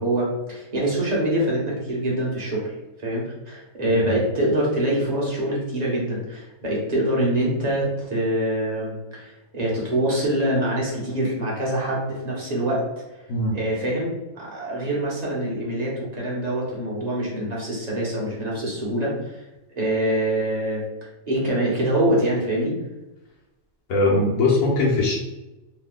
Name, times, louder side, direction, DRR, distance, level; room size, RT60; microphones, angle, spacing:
voice 1, 0.0-2.7 3.0-12.8 13.5-19.4 19.8-20.8 21.3-22.7, right 1 dB, 35° right, -5 dB, 0.9 m, -24 dB
voice 2, 23.9-25.2, left 2 dB, 75° left, -3 dB, 1.1 m, -21 dB
3.1 x 2.2 x 3.7 m, 1.0 s
omnidirectional pair, 1.5 m